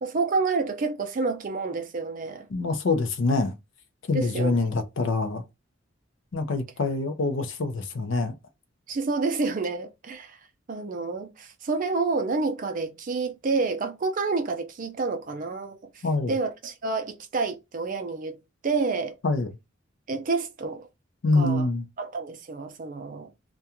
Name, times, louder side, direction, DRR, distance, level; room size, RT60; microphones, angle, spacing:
voice 1, 0.0-2.5 4.1-4.7 8.9-10.4 10.7-18.4 18.6-19.2 20.1-20.9 21.3-21.7 22.0-23.3, right 4 dB, 40° right, 0.4 m, -29 dB
voice 2, 2.5-3.5 4.1-5.4 6.3-8.4 16.0-16.3 19.2-19.5 21.2-21.8, left 3 dB, 65° left, 0.5 m, -25 dB
2.4 x 2.2 x 2.8 m
head